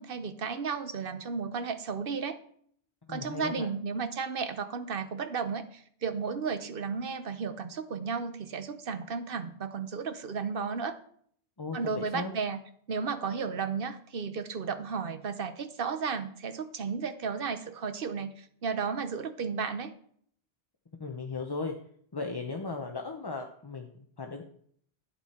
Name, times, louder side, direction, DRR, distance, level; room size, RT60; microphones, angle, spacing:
voice 1, 0.0-2.4 3.1-11.0 11.7-12.6 12.9-19.9, right 5 dB, 60° right, 10 dB, 1.0 m, -33 dB
voice 2, 3.1-3.7 11.6-12.3 21.0-21.7 22.1-24.4, left 4 dB, 25° left, 3 dB, 0.7 m, -36 dB
11.5 x 8.6 x 4.3 m, 0.63 s
omnidirectional pair, 1.1 m